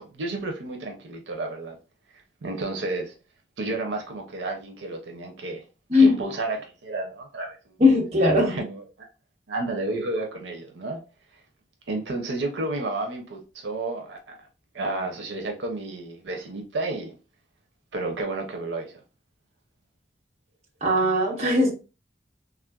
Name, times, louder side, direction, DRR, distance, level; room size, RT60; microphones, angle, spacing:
voice 1, 0.0-1.8 2.1-3.1 3.6-5.6 6.0-7.8 8.5-9.1 9.5-11.0 11.9-14.5 14.7-17.2 17.9-19.0, right 2 dB, 90° right, 0.6 m, -31 dB
voice 2, 7.8-8.6 20.8-21.7, left 2 dB, 35° right, 0.9 m, -19 dB
3.2 x 2.4 x 2.2 m
head